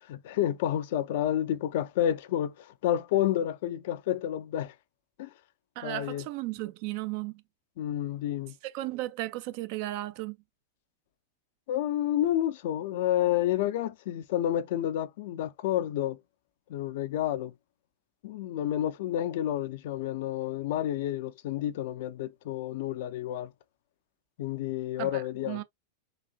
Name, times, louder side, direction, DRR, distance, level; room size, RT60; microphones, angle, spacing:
voice 1, 0.1-4.7 5.2-5.3 5.8-6.2 7.8-8.5 11.7-16.2 16.7-17.5 18.2-23.5 24.4-25.6, left 12 dB, 50° left, 0.4 m, -30 dB
voice 2, 5.8-7.4 8.6-10.4 25.0-25.6, right 17 dB, 45° right, 0.4 m, -35 dB
4.0 x 2.5 x 2.3 m
figure-of-eight pair, 90°, 0 cm